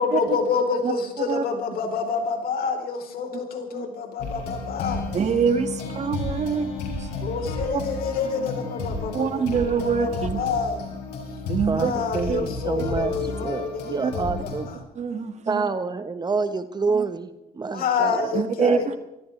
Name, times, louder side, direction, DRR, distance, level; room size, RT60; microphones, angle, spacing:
voice 1, 0.0-5.0 7.2-9.5 9.8-10.8 11.7-14.7 17.7-19.0, left 5 dB, 60° left, 4 dB, 4.0 m, -28 dB
sound 1, 4.2-14.8, left 3 dB, 80° left, 5.9 m, -32 dB
voice 2, 5.1-6.7 7.0-7.1 7.7-7.8 9.1-10.4 11.5-11.9 12.3-12.4 14.0-14.1 14.9-15.7 16.9-17.0 18.3-19.0, right 6 dB, 40° right, 7 dB, 2.1 m, -25 dB
voice 3, 11.7-13.1 13.4-14.7 15.5-17.3 17.5-18.8, right 4 dB, 25° right, 10 dB, 1.2 m, -28 dB
24.5 x 16.0 x 3.4 m, 0.90 s
cardioid pair, 110°, 17 cm